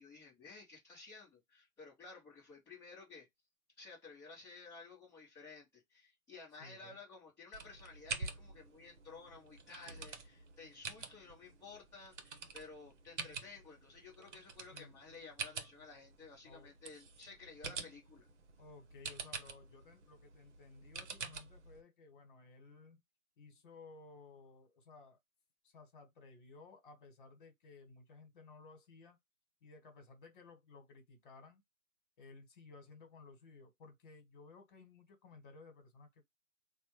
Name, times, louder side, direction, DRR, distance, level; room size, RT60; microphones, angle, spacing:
voice 1, 0.0-3.3 3.8-18.3, left 4 dB, 5° left, 1.0 m, -54 dB
voice 2, 6.6-7.0 14.7-15.0 16.4-16.7 18.6-23.0 23.4-25.2 25.6-29.2 29.6-31.6 32.2-36.2, left 3 dB, 35° left, 1.6 m, -57 dB
sound 1, 7.5-21.8, right 4 dB, 55° right, 1.1 m, -48 dB
4.0 x 2.4 x 3.1 m
figure-of-eight pair, 135°, 43 cm